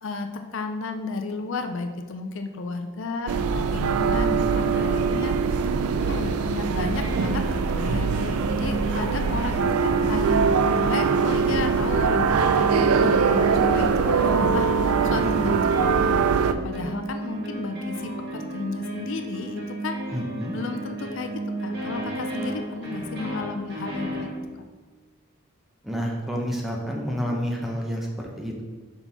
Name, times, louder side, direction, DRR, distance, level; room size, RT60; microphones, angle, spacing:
voice 1, 0.0-5.4 6.1-20.0 20.5-21.3 21.6-24.3, left 3 dB, 60° left, 6 dB, 0.5 m, -33 dB
sound 1, 3.3-16.5, right 5 dB, 85° right, 0.4 m, -22 dB
voice 2, 4.0-4.6 15.2-15.5 20.1-20.5 25.8-28.6, equal, ahead, -1 dB, 0.8 m, -30 dB
sound 2, 4.4-5.1 5.6-24.4, right 1 dB, 50° right, 1.4 m, -34 dB
5.7 x 4.5 x 5.3 m, 1.4 s
head